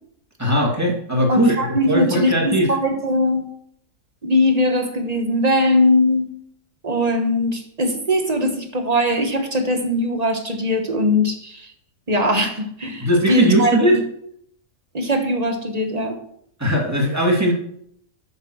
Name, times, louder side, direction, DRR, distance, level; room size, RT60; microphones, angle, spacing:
voice 1, 0.4-2.7 13.0-14.0 16.6-17.5, equal, 10° right, -2 dB, 2.2 m, -19 dB
voice 2, 1.3-3.4 4.2-6.3 6.8-11.7 12.1-14.0 14.9-16.2, left 1 dB, 30° right, 5 dB, 1.1 m, -20 dB
7.2 x 7.1 x 6.2 m, 0.69 s
omnidirectional pair, 1.6 m